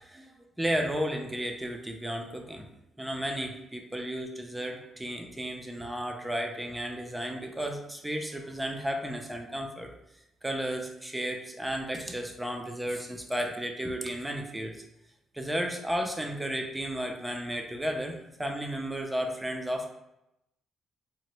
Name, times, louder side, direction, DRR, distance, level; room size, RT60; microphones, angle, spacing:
voice 1, 0.0-2.7 3.0-9.9 10.4-14.7 15.3-19.9, equal, 10° right, 3 dB, 0.4 m, -33 dB
2.9 x 2.1 x 3.0 m, 0.86 s
cardioid pair, 90°, 0 cm